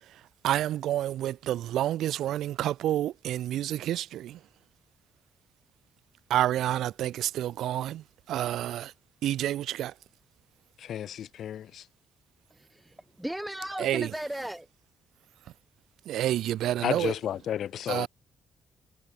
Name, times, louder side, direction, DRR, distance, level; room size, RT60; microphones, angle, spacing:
voice 1, 0.4-4.4 6.3-8.9 9.2-9.9 13.8-14.1 16.1-17.1 17.9-18.1, right 12 dB, 85° right, 0.4 m, -29 dB
voice 2, 10.8-11.8 16.8-18.1, left 10 dB, 65° left, 1.0 m, -32 dB
voice 3, 12.5-14.7, right 1 dB, 5° right, 1.0 m, -36 dB
cardioid pair, 140°, 0 cm